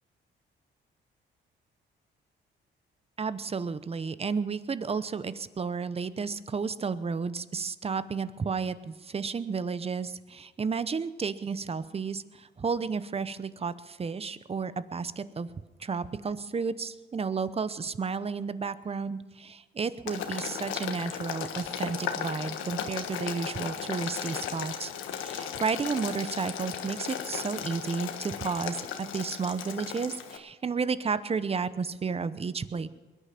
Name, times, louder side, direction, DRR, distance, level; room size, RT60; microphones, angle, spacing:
voice 1, 3.2-15.5 15.8-32.9, right 5 dB, 30° right, 14 dB, 0.8 m, -32 dB
Boiling, 20.1-30.4, left 8 dB, 85° left, 1.4 m, -36 dB
22.0 x 10.0 x 5.8 m, 1.3 s
cardioid pair, 90°, 20 cm